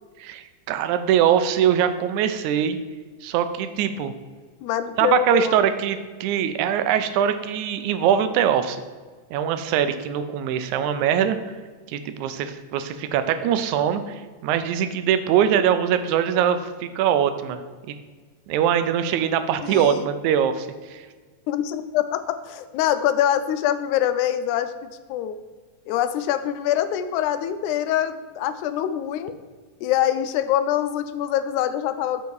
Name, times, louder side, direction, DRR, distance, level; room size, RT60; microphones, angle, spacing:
voice 1, 0.2-2.8 3.2-4.1 5.0-8.8 9.3-11.4 11.9-17.6 17.9-18.0 18.5-21.1, right 9 dB, 85° right, 10 dB, 1.9 m, -22 dB
voice 2, 4.6-5.5 19.6-20.1 21.5-24.7 25.1-25.4 25.9-29.3 29.8-32.2, left 11 dB, 85° left, 11 dB, 2.0 m, -24 dB
6.9 x 5.5 x 4.7 m, 1.5 s
omnidirectional pair, 3.4 m